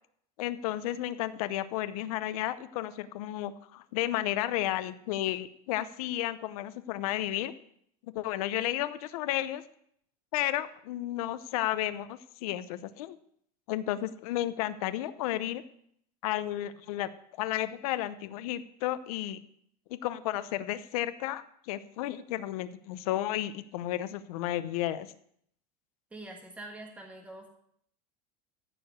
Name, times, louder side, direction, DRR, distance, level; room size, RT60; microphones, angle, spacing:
voice 1, 0.4-7.5 8.1-9.6 10.3-13.2 13.7-15.6 16.2-17.1 17.4-19.4 19.9-25.1, left 14 dB, 60° left, 12 dB, 0.8 m, -32 dB
voice 2, 26.1-27.5, right 2 dB, 5° right, 2 dB, 1.5 m, -45 dB
14.0 x 4.9 x 8.0 m, 0.68 s
supercardioid pair, 180°, 21 cm